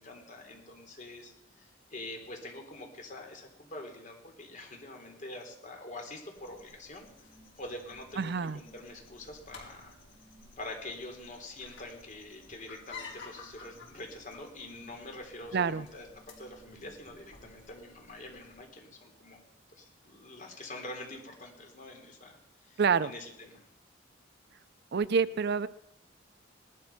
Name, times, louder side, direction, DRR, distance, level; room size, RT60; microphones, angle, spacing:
voice 1, 0.0-7.1 7.6-10.0 10.6-19.4 19.7-23.7, left 2 dB, 40° left, 2 dB, 3.6 m, -45 dB
sound 1, 6.3-18.6, left 4 dB, 70° left, 4.5 m, -53 dB
voice 2, 8.2-8.6 15.5-15.9 22.8-23.1 24.9-25.7, right 5 dB, 60° right, 17 dB, 0.5 m, -27 dB
19.0 x 12.0 x 5.9 m, 0.85 s
head